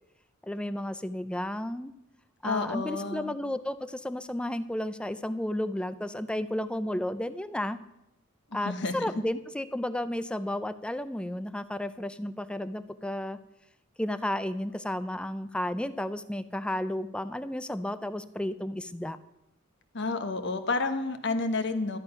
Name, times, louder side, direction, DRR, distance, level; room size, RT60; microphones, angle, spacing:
voice 1, 0.4-1.9 2.4-7.8 8.5-13.4 14.0-19.2, left 1 dB, 5° left, 13 dB, 0.4 m, -32 dB
voice 2, 2.4-3.3 8.6-9.2 19.9-22.0, left 3 dB, 60° left, 8 dB, 1.1 m, -30 dB
13.0 x 8.7 x 5.7 m, 0.86 s
head